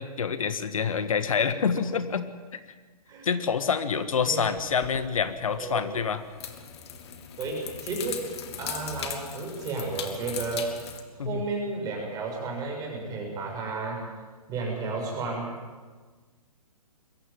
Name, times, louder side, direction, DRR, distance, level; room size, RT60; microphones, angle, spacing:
voice 1, 0.0-2.3 2.5-2.6 3.2-6.2 11.2-11.4, left 6 dB, 60° left, 11 dB, 1.5 m, -27 dB
sound 1, 4.4-11.0, left 8 dB, 45° left, 2.3 m, -39 dB
voice 2, 5.6-5.9 7.4-8.3 8.6-10.7 11.1-14.0 14.5-15.5, right 3 dB, 20° right, 0 dB, 6.7 m, -32 dB
22.0 x 16.0 x 9.4 m, 1.4 s
figure-of-eight pair, 130°, 20 cm